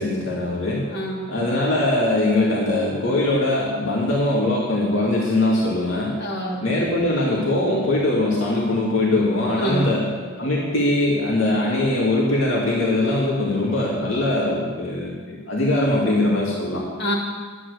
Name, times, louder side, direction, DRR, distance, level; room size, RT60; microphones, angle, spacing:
voice 1, 0.0-0.9 1.3-6.2 6.6-10.1 10.4-16.8, left 1 dB, 70° left, -5 dB, 2.4 m, -21 dB
voice 2, 0.9-1.4 6.2-7.0 9.6-10.0 17.0-17.2, equal, 55° left, -4 dB, 2.8 m, -27 dB
11.5 x 9.8 x 6.6 m, 1.5 s
head